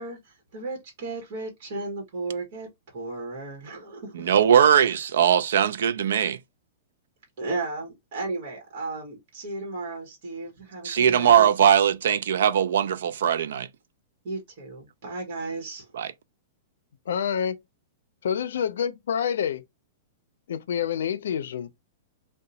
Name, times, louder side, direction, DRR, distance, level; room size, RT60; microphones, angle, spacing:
voice 1, 0.0-4.3 7.4-11.5 14.2-15.9, right 3 dB, 45° right, 1.2 m, -34 dB
voice 2, 4.1-6.4 10.8-13.7 15.9-16.1, right 8 dB, 80° right, 0.4 m, -20 dB
voice 3, 17.1-17.6 18.2-19.6 20.5-21.8, left 8 dB, 85° left, 0.4 m, -27 dB
2.8 x 2.2 x 3.9 m
supercardioid pair, 170°, 0 cm